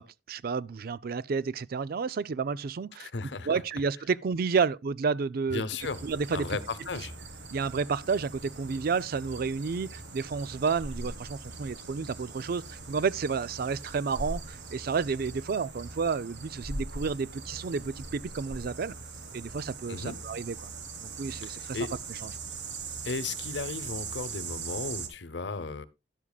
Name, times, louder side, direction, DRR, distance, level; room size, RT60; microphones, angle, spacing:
voice 1, 0.0-3.1 3.5-5.6 6.0-6.5 7.5-18.9 19.3-20.7 21.0-21.8 22.2-22.3, right 5 dB, 55° right, 0.4 m, -31 dB
voice 2, 3.0-3.5 5.5-6.0 6.3-7.1 19.9-20.2 21.4-21.9 23.0-25.8, left 4 dB, 75° left, 0.9 m, -35 dB
sound 1, 5.8-25.1, right 4 dB, 80° right, 1.8 m, -41 dB
12.0 x 11.5 x 2.3 m
head